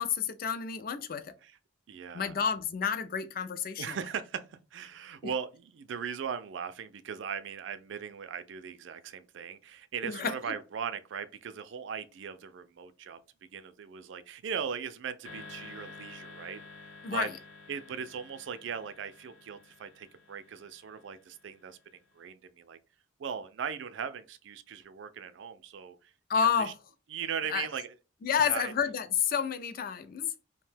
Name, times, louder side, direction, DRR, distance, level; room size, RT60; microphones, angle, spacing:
voice 1, 0.0-1.4 2.1-4.0 10.0-10.5 17.0-17.3 26.3-26.8 27.5-27.7 28.2-30.3, left 7 dB, 45° left, 0.3 m, -30 dB
voice 2, 1.9-2.3 3.8-13.2 13.5-17.3 17.7-21.8 22.1-22.8 23.2-26.7 27.1-27.9 28.4-28.7, right 7 dB, 70° right, 0.3 m, -39 dB
sound 1, 15.2-21.6, left 4 dB, 90° left, 1.1 m, -50 dB
2.7 x 2.1 x 3.2 m
head